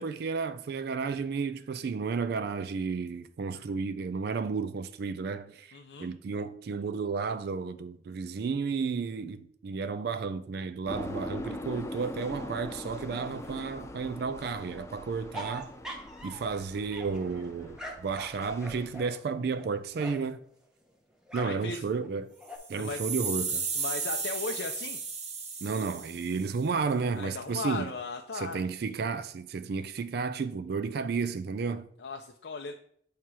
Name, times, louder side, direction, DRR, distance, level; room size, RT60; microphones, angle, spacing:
voice 1, 0.0-15.7 16.2-20.4 21.3-22.3 22.7-23.6 25.6-27.9 28.3-31.9, right 5 dB, 60° right, 0.4 m, -32 dB
voice 2, 5.7-6.1 21.4-21.8 22.8-23.0 23.7-25.0 27.2-28.6 32.0-32.7, left 4 dB, 80° left, 0.5 m, -37 dB
sound 1, 10.9-19.0, left 1 dB, 15° left, 0.4 m, -42 dB
sound 2, 15.3-16.6 16.9-20.3 21.3-21.7 22.0-22.6, right 1 dB, 5° right, 0.8 m, -43 dB
sound 3, 22.5-26.7, right 5 dB, 40° right, 1.0 m, -35 dB
7.5 x 2.9 x 4.6 m
head